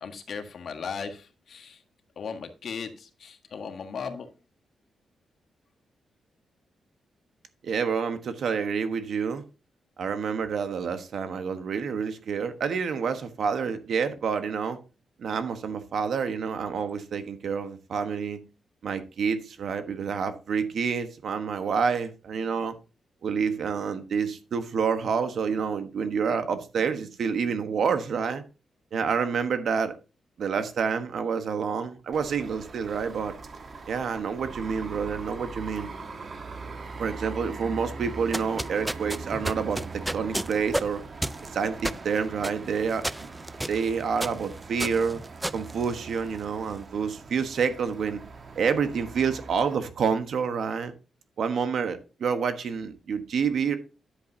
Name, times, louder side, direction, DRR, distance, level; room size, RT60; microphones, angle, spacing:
voice 1, 0.0-1.8 2.2-4.3, left 6 dB, 60° left, 1.5 m, -37 dB
voice 2, 7.6-9.4 10.0-14.8 15.2-18.4 18.8-22.7 23.2-28.4 28.9-30.0 30.4-33.3 33.9-35.9 37.0-39.8 40.1-41.0 41.5-43.3 43.6-45.2 45.5-48.2 48.6-50.9 51.4-53.8, right 6 dB, 65° right, 1.3 m, -28 dB
sound 1, 32.1-49.8, right 3 dB, 45° right, 1.3 m, -41 dB
sound 2, 38.1-46.5, right 1 dB, 10° right, 0.4 m, -33 dB
10.5 x 7.9 x 2.8 m
cardioid pair, 120°, 0 cm